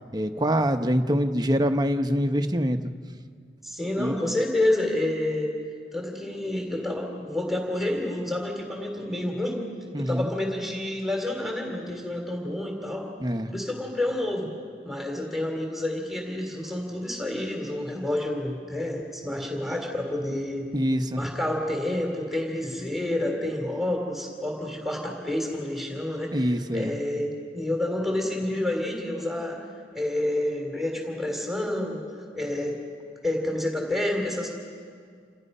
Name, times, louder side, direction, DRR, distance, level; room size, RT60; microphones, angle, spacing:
voice 1, 0.1-2.9 4.0-4.2 9.9-10.3 13.2-13.5 20.7-21.2 26.3-26.9, equal, 25° right, 7 dB, 0.9 m, -25 dB
voice 2, 3.6-5.6 5.9-9.6 10.0-13.1 13.5-14.5 14.8-20.7 21.1-26.4 26.7-29.7 29.9-32.0 32.3-32.8 33.2-34.5, left 1 dB, ahead, 1 dB, 3.2 m, -29 dB
28.5 x 28.0 x 5.5 m, 2.1 s
head